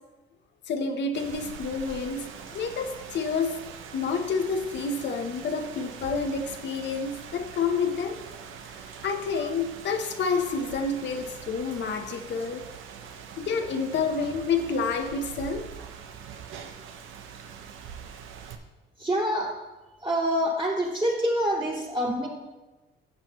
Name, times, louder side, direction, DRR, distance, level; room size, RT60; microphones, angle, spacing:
voice 1, 0.7-3.6 3.9-12.7 13.4-15.7, left 4 dB, 65° left, 5 dB, 0.9 m, -29 dB
Rain, 1.1-18.6, right 7 dB, 85° right, 0.8 m, -43 dB
voice 2, 19.0-19.5 20.0-22.3, equal, 25° right, -3 dB, 2.8 m, -26 dB
13.0 x 7.6 x 3.0 m, 1.2 s
cardioid pair, 90°, 20 cm